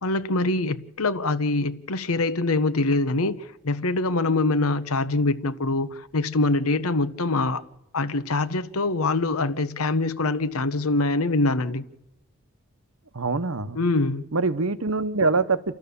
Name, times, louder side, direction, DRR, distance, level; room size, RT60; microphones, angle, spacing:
voice 1, 0.0-7.6 7.9-11.8 13.7-14.2, left 2 dB, 80° left, 1.0 m, -24 dB
voice 2, 13.1-13.8 14.3-15.7, right 3 dB, 70° right, 1.0 m, -24 dB
29.5 x 13.0 x 6.9 m
head